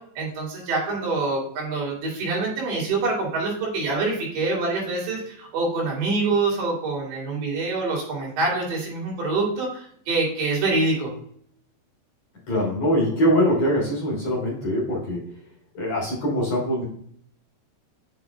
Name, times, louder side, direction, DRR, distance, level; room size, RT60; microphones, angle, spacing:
voice 1, 0.2-11.1, right 3 dB, 70° right, -3 dB, 4.3 m, -25 dB
voice 2, 12.5-15.2 15.7-16.9, equal, 45° left, -5 dB, 3.8 m, -23 dB
8.7 x 6.0 x 2.3 m, 0.62 s
omnidirectional pair, 5.0 m